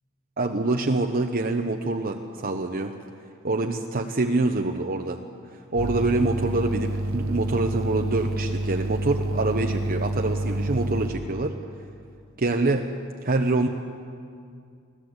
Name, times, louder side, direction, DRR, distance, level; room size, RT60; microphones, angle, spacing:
voice 1, 0.4-2.9 3.4-5.2 5.7-11.5 12.4-12.9 13.2-13.7, right 2 dB, 45° right, 3 dB, 1.0 m, -25 dB
sound 1, 5.8-11.1, right 1 dB, 70° right, 1.0 m, -28 dB
25.0 x 15.5 x 8.1 m, 2.3 s
head